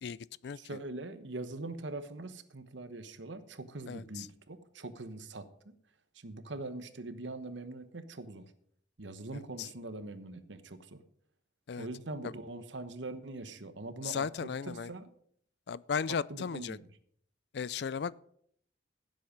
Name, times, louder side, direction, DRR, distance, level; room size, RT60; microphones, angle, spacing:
voice 1, 0.0-0.6 3.9-4.3 9.6-9.7 11.7-11.9 14.0-14.9 15.7-16.8 17.5-18.2, left 6 dB, 65° left, 0.4 m, -36 dB
voice 2, 0.6-5.7 6.1-8.5 9.0-11.0 11.8-15.1 16.1-16.8, right 2 dB, 85° right, 1.1 m, -43 dB
15.5 x 7.6 x 5.2 m
head